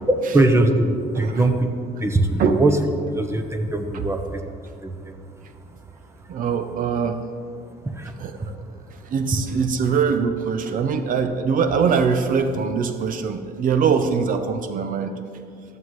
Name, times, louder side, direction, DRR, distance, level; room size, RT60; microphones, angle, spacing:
voice 1, 0.1-1.7 2.0-2.7 3.1-4.4 4.8-5.2 7.8-8.2 8.4-8.5, right 2 dB, 15° right, 6 dB, 0.8 m, -21 dB
voice 2, 1.1-1.5 2.4-2.6 3.9-4.0 6.3-7.2 8.2-8.6 9.0-15.1, right 6 dB, 55° right, 9 dB, 0.6 m, -22 dB
13.5 x 7.5 x 3.1 m, 2.4 s
cardioid pair, 110°, 17 cm